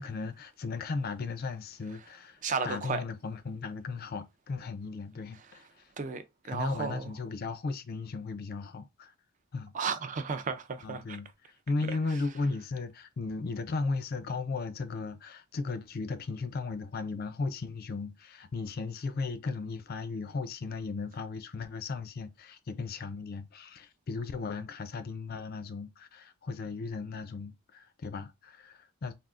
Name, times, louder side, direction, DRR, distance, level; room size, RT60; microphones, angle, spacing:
voice 1, 0.0-5.7 6.4-9.1 9.5-9.7 10.8-11.3 11.7-29.1, left 4 dB, 45° left, 0.4 m, -36 dB
voice 2, 2.4-3.0 6.0-7.1 9.7-11.0, right 5 dB, 35° right, 0.3 m, -33 dB
3.6 x 2.3 x 2.4 m
head